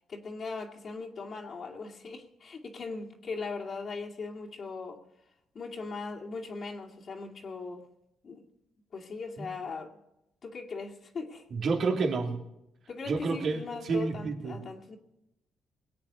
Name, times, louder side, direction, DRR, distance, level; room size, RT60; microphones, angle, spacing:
voice 1, 0.1-5.0 5.5-7.8 8.2-8.4 8.9-9.9 10.4-11.4 12.9-15.0, left 4 dB, 50° left, -2 dB, 2.3 m, -39 dB
voice 2, 11.5-12.4 13.1-14.6, right 4 dB, 60° right, 3 dB, 2.9 m, -30 dB
21.5 x 8.5 x 6.8 m, 0.87 s
cardioid pair, 90°, 0 cm